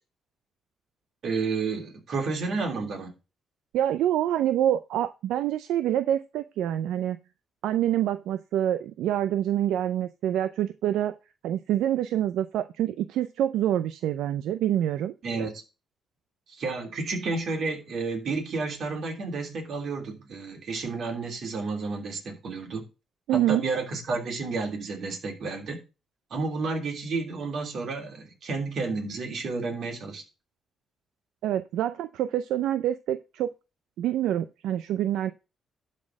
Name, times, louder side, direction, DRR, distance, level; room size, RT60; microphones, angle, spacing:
voice 1, 1.2-3.1 15.2-15.6 16.5-22.8 23.3-25.8 26.3-30.2, right 4 dB, 60° right, 3.1 m, -31 dB
voice 2, 3.7-7.2 7.6-11.1 11.4-15.1 23.3-23.6 31.4-33.5 34.0-35.3, right 11 dB, 85° right, 0.5 m, -26 dB
12.0 x 4.3 x 6.2 m
cardioid pair, 90°, 0 cm